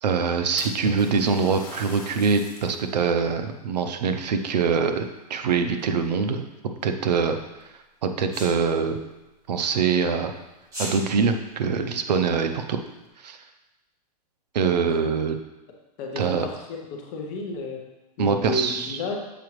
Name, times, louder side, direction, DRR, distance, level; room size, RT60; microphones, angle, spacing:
voice 1, 0.0-6.4 6.8-7.4 8.0-9.0 9.5-10.3 10.8-12.8 13.2-13.4 14.5-15.4 16.2-16.5 18.2-19.0, right 5 dB, 80° right, 7 dB, 0.7 m, -24 dB
Splash splatter, 0.6-2.9 3.4-3.5 4.4-5.4 5.8-6.2 7.0-7.1 7.6-7.7 9.9-10.0 10.3-10.4 11.0-11.1 11.5-11.6 12.3-12.9, left 4 dB, 50° left, 1.4 m, -41 dB
Sneeze, 8.3-8.5 10.6-11.0, equal, 15° right, 1.1 m, -33 dB
voice 2, 16.0-16.6 16.9-17.8 18.2-19.2, left 2 dB, 20° left, 0 dB, 0.7 m, -31 dB
6.9 x 4.8 x 3.1 m, 1.0 s
hypercardioid pair, 175°, 21 cm